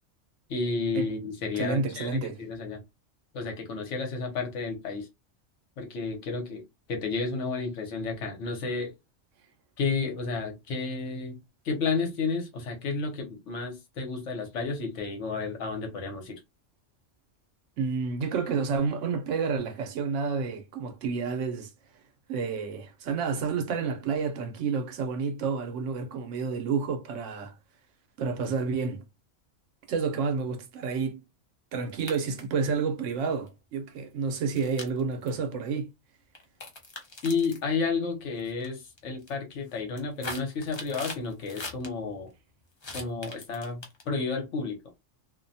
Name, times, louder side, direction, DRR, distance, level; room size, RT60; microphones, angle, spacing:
voice 1, 0.5-2.8 3.3-5.1 5.8-6.6 6.9-8.9 9.8-11.4 11.6-16.4 37.2-42.3 42.9-44.8, left 4 dB, 75° left, 1.1 m, -31 dB
voice 2, 1.5-2.4 17.8-21.7 22.3-27.5 28.2-29.0 29.9-31.2 31.7-35.9, right 5 dB, 80° right, 1.0 m, -30 dB
sound 1, 31.9-32.5 33.3-33.5 34.5-35.3 36.3-37.6 38.4-38.6 39.0-39.3 39.7-41.9 42.8-44.2, left 3 dB, 35° left, 0.4 m, -40 dB
2.5 x 2.1 x 2.6 m
omnidirectional pair, 1.3 m